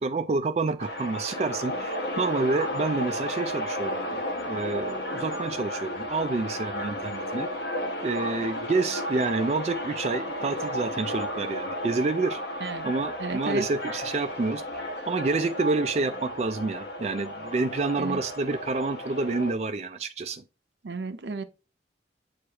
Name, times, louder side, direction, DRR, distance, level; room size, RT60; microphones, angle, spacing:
voice 1, 0.0-4.2 4.5-7.5 8.0-12.4 12.8-20.4, right 3 dB, 40° right, 0.3 m, -28 dB
sound 1, 0.8-19.5, equal, 75° left, 1.2 m, -33 dB
voice 2, 13.2-13.6 18.0-18.2 20.8-21.4, right 4 dB, 80° right, 0.6 m, -33 dB
7.9 x 4.7 x 2.9 m
head